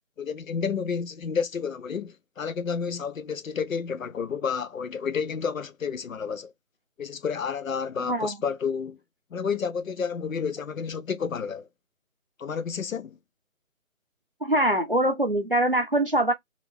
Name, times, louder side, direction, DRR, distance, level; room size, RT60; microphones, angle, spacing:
voice 1, 0.2-6.5 7.0-9.0 9.3-11.7 12.4-13.2, left 6 dB, 65° left, 0.6 m, -30 dB
voice 2, 8.1-8.4 14.4-16.3, right 1 dB, 40° right, 0.6 m, -23 dB
2.7 x 2.5 x 3.4 m
figure-of-eight pair, 180°, 43 cm